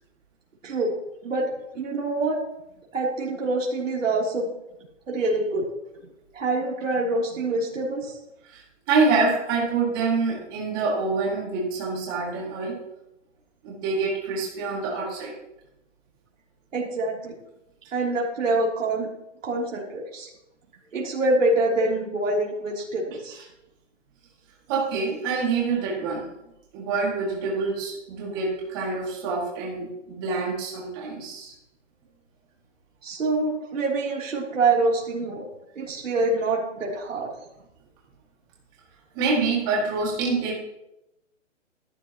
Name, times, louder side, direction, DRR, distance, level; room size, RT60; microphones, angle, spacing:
voice 1, 1.2-2.4 2.9-4.5 5.1-5.6 6.3-8.1 16.7-17.3 17.9-19.1 19.4-20.3 20.9-23.4 33.0-35.4 35.7-37.3, right 2 dB, 80° right, -4 dB, 3.3 m, -25 dB
voice 2, 8.9-12.8 13.6-15.3 24.7-26.2 26.7-31.5 39.1-40.6, right 4 dB, 15° right, -3 dB, 2.2 m, -26 dB
13.5 x 12.0 x 3.0 m, 0.89 s
hypercardioid pair, 180°, 38 cm